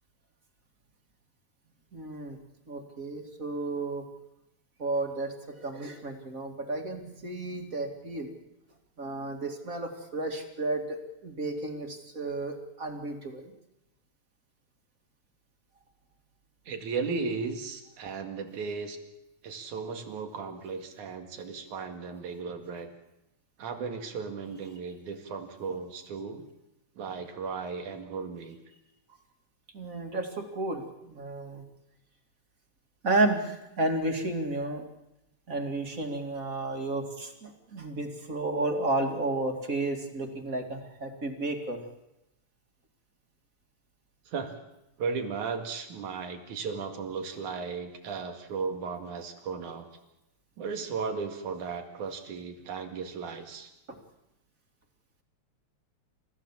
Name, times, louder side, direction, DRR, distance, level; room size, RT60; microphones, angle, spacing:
voice 1, 1.9-2.4 2.7-4.1 4.8-8.3 9.0-13.5 29.7-31.6 33.0-34.8 35.5-41.8 53.9-54.0, right 2 dB, 30° right, 4 dB, 2.4 m, -32 dB
voice 2, 16.7-19.0 19.4-22.9 23.6-26.4 27.0-28.6 44.3-44.6 45.0-49.9 50.6-53.7, right 5 dB, 90° right, 5 dB, 3.5 m, -35 dB
29.0 x 15.0 x 7.4 m, 0.89 s
omnidirectional pair, 3.3 m